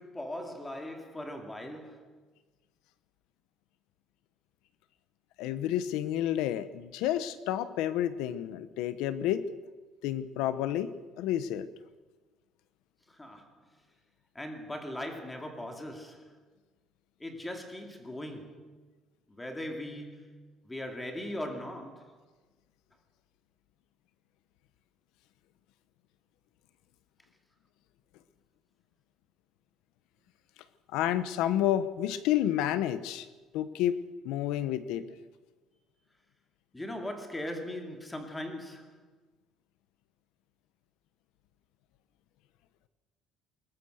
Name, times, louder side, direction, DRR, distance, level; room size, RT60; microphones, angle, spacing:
voice 1, 0.0-2.2 13.1-13.7 14.3-16.4 17.2-18.8 19.3-22.2 36.7-39.1, left 1 dB, 10° left, 2.5 m, -40 dB
voice 2, 5.4-9.5 10.0-10.9 11.2-11.7 30.9-33.3 33.5-35.0, left 11 dB, 80° left, 1.2 m, -30 dB
21.0 x 20.0 x 6.6 m
cardioid pair, 170°, 0 cm